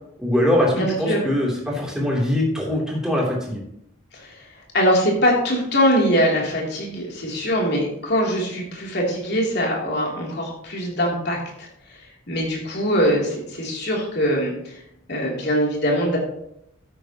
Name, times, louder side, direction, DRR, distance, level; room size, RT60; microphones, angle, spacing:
voice 1, 0.2-3.6, left 1 dB, 5° right, -4 dB, 3.3 m, -22 dB
voice 2, 0.7-1.2 4.1-4.4 4.7-11.7 12.3-14.8 15.1-16.2, equal, 55° left, -2 dB, 3.3 m, -22 dB
12.5 x 9.4 x 3.0 m, 0.76 s
head